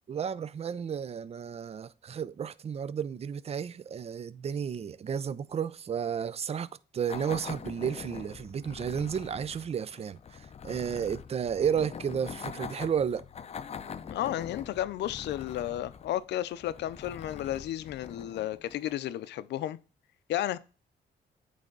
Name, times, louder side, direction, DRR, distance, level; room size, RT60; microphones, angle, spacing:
voice 1, 0.1-13.2, right 8 dB, 35° right, 0.4 m, -32 dB
sound 1, 7.1-19.3, left 7 dB, 40° left, 0.5 m, -44 dB
voice 2, 14.1-19.8 20.3-20.6, left 13 dB, 85° left, 0.5 m, -33 dB
8.8 x 3.3 x 3.8 m
cardioid pair, 100°, 17 cm